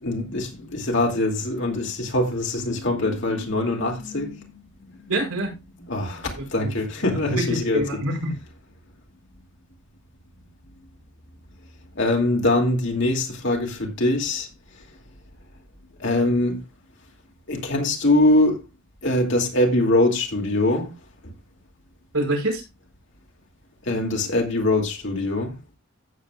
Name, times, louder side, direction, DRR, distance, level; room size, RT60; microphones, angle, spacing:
voice 1, 0.0-5.1 5.8-7.8 12.0-14.5 16.0-16.6 17.5-18.6 19.0-20.9 23.9-25.6, left 1 dB, 55° left, 2.4 m, -23 dB
voice 2, 5.1-5.5 6.4-6.7 7.1-8.3 22.1-22.6, right 1 dB, 75° right, 5.0 m, -26 dB
15.5 x 7.5 x 2.4 m
head